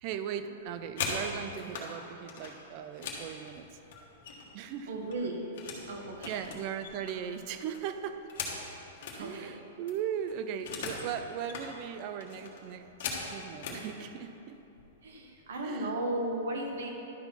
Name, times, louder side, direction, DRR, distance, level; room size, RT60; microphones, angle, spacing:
voice 1, 0.0-3.8 4.5-5.0 6.2-8.3 9.2-12.9 13.3-14.6 15.6-16.0, right 8 dB, 30° right, 10 dB, 0.3 m, -38 dB
sound 1, 0.6-1.9 2.3-4.6 4.9-5.9 6.2-9.2 9.6-9.7 9.9-11.1 11.4-11.7 12.2-13.8 14.7-14.8 15.2-15.5 15.8-16.3, left 5 dB, 50° left, 1.5 m, -40 dB
voice 2, 4.9-5.4 5.9-6.3 9.2-9.5 15.0-16.9, right 1 dB, 85° right, 1 dB, 1.4 m, -35 dB
11.5 x 4.3 x 5.6 m, 3.0 s
supercardioid pair, 170°, 0 cm